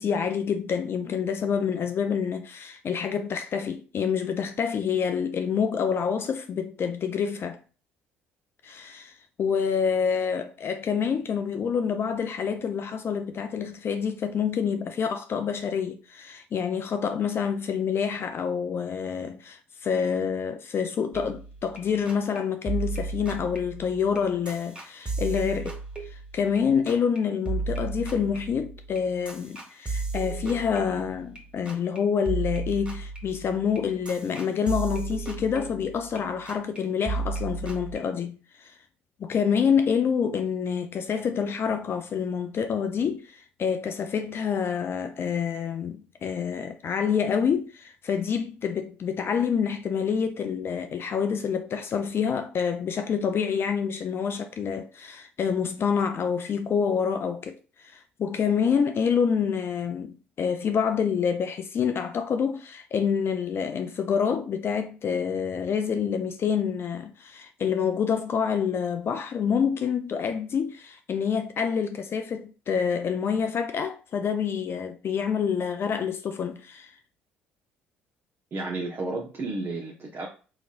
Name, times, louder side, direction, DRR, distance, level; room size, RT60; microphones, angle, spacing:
voice 1, 0.0-7.6 8.6-25.8 26.1-38.8 39.2-76.9, left 7 dB, 45° left, 0.4 m, -27 dB
sound 1, 21.1-21.8 22.1-22.4 22.7-26.6 26.9-27.2 27.5-31.4 31.7-32.0 32.3-36.2 36.5-36.8 37.1-38.0, right 3 dB, 20° right, 1.6 m, -34 dB
voice 2, 78.5-80.3, right 2 dB, 40° right, 0.9 m, -32 dB
4.0 x 2.9 x 2.4 m
hypercardioid pair, 55°, 6 cm